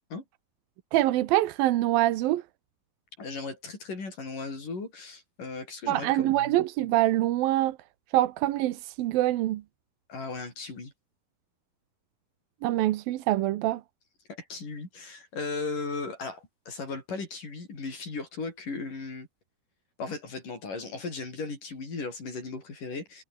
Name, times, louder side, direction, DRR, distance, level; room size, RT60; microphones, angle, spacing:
voice 1, 0.9-2.4 5.9-7.8 8.1-9.6 12.6-13.8, right 15 dB, 85° right, 2.8 m, -25 dB
voice 2, 3.2-6.6 10.1-10.9 14.3-19.3 20.0-23.2, left 4 dB, 65° left, 8.7 m, -37 dB
omnidirectional pair, 4.1 m